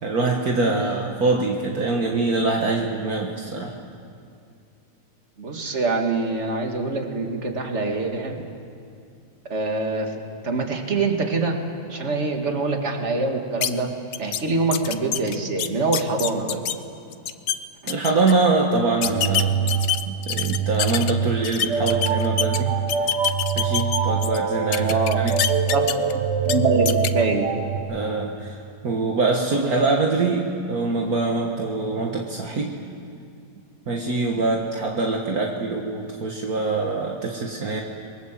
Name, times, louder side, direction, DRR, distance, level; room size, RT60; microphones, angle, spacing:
voice 1, 0.0-3.8 17.9-19.7 20.1-22.8 23.5-25.4 27.9-32.8 33.9-37.8, right 3 dB, 60° right, 0 dB, 2.1 m, -24 dB
voice 2, 5.4-8.4 9.5-11.6 11.9-13.9 14.2-16.7 17.8-18.0 24.8-25.2 25.7-26.0 26.5-27.5, right 3 dB, 40° right, 3 dB, 2.4 m, -24 dB
sound 1, 13.6-13.7 14.1-14.4 14.7-16.7 17.1-17.6 17.9-18.3 19.0-21.1 21.4-22.6 22.9-24.4 24.7-26.1 26.4-26.5 26.9-27.1, left 10 dB, 75° left, 1.4 m, -25 dB
sound 2, 19.0-27.8, right 6 dB, 90° right, 2.7 m, -24 dB
27.5 x 22.0 x 7.6 m, 2.4 s
omnidirectional pair, 1.8 m